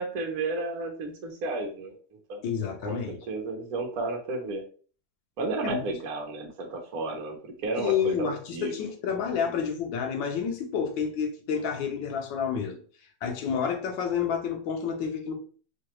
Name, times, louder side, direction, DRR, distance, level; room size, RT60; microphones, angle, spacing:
voice 1, 0.0-2.0 2.3-2.4 2.8-4.6 5.4-8.7, right 3 dB, 60° right, 1.2 m, -32 dB
voice 2, 2.4-3.2 5.6-5.8 7.8-12.8 13.2-15.3, left 7 dB, 85° left, 1.5 m, -29 dB
4.9 x 2.3 x 3.0 m
omnidirectional pair, 2.0 m